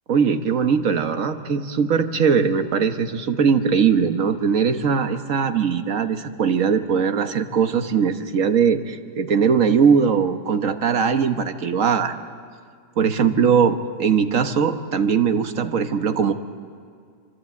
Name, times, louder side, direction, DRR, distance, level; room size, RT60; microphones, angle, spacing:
voice 1, 0.1-12.3 13.0-16.3, right 6 dB, 65° right, 8 dB, 1.5 m, -20 dB
26.5 x 24.5 x 8.4 m, 2.2 s
omnidirectional pair, 1.5 m